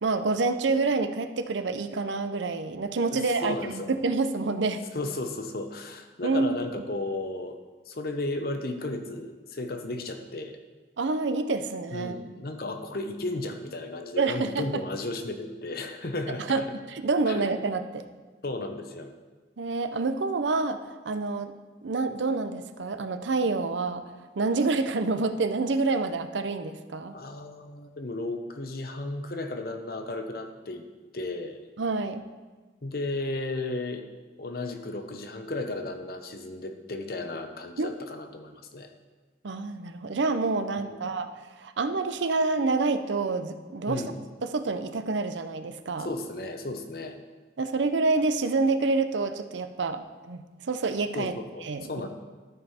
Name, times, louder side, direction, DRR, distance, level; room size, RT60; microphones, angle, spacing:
voice 1, 0.0-4.8 6.2-6.6 11.0-12.1 14.2-14.6 16.4-16.6 17.0-18.1 19.6-20.8 21.0-21.5 21.8-24.0 24.4-27.1 31.8-32.2 37.8-37.9 39.4-41.3 41.6-44.0 44.4-46.1 47.6-51.3 51.6-51.9, right 3 dB, 85° right, 9 dB, 0.6 m, -27 dB
voice 2, 3.1-3.9 4.9-7.6 7.9-10.6 11.9-16.7 17.3-17.5 18.4-19.1 27.1-30.9 31.1-31.6 32.8-34.1 34.4-38.9 40.9-41.1 43.8-44.2 46.0-47.2 51.1-51.6 51.9-52.1, left 2 dB, 55° left, 6 dB, 0.8 m, -34 dB
13.0 x 5.4 x 4.2 m, 1.3 s
head